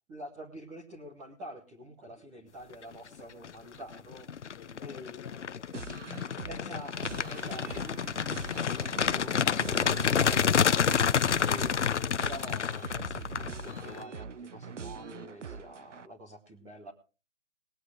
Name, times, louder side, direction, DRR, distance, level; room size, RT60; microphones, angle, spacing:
voice 1, 0.1-4.3 4.8-5.4 6.5-11.0 11.4-16.9, equal, 5° right, -4 dB, 0.7 m, -47 dB
voice 2, 2.0-2.4 4.1-4.2 4.5-6.9 7.2-7.3, left 9 dB, 20° left, 6 dB, 2.5 m, -57 dB
sound 1, 3.2-3.5 3.9-14.0, left 7 dB, 70° left, 0.7 m, -29 dB
sound 2, 5.7-16.1, right 6 dB, 75° right, 0.9 m, -44 dB
sound 3, 6.9-11.9, right 3 dB, 40° right, 1.5 m, -47 dB
20.0 x 8.0 x 4.8 m, 0.34 s
figure-of-eight pair, 150°, 37 cm